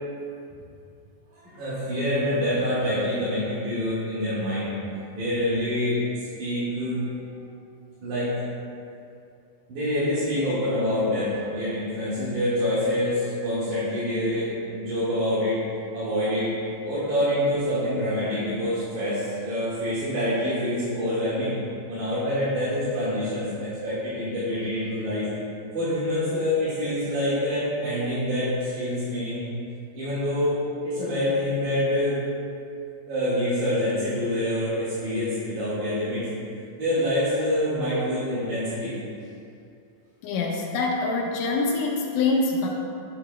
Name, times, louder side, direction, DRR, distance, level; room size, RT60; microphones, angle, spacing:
voice 1, 1.4-4.7 5.1-6.0 6.4-7.3 8.0-8.4 9.7-15.6 15.9-16.5 16.9-21.5 21.9-25.3 25.7-29.4 29.9-32.2 33.1-36.2 36.8-38.9, left 1 dB, 75° right, -13 dB, 3.3 m, -26 dB
voice 2, 40.2-42.7, left 3 dB, 85° left, -1 dB, 2.3 m, -25 dB
11.5 x 6.6 x 2.2 m, 2.5 s
omnidirectional pair, 3.5 m